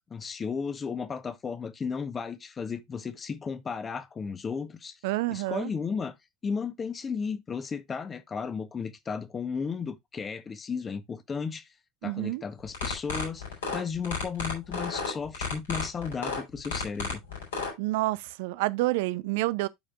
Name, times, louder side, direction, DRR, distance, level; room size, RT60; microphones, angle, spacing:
voice 1, 0.1-5.0 5.3-6.1 6.4-11.7 12.0-13.4 13.7-17.2, left 5 dB, 25° left, 1.0 m, -34 dB
voice 2, 5.0-5.7 12.0-12.4 17.8-19.7, right 19 dB, 60° right, 0.5 m, -28 dB
sound 1, 12.6-17.7, left 4 dB, 70° left, 4.3 m, -32 dB
12.0 x 5.0 x 2.4 m
figure-of-eight pair, 75°, 0 cm